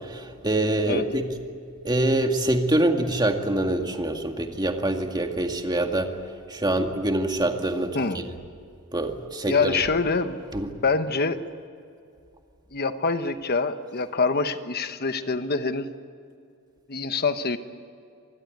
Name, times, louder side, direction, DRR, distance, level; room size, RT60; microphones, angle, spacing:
voice 1, 0.1-1.3 1.9-6.1 6.5-8.0 8.9-9.8 10.5-10.7, right 1 dB, 20° right, 4 dB, 2.1 m, -25 dB
voice 2, 9.5-10.4 10.8-11.4 12.7-15.9 16.9-17.6, left 4 dB, 45° left, 9 dB, 1.2 m, -25 dB
26.0 x 20.5 x 9.4 m, 2.4 s
head